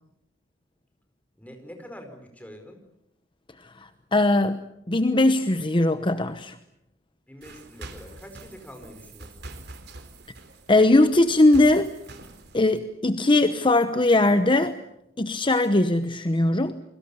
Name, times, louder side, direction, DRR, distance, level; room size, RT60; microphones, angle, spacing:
voice 1, 1.4-2.8 7.3-9.5, equal, 10° left, 5 dB, 4.7 m, -45 dB
voice 2, 3.6-6.6 10.7-11.9 12.5-14.8 15.2-16.8, left 2 dB, 25° left, 9 dB, 1.0 m, -20 dB
sound 1, 7.4-12.8, right 2 dB, 60° right, 3.6 m, -45 dB
29.5 x 23.0 x 6.9 m, 0.81 s
head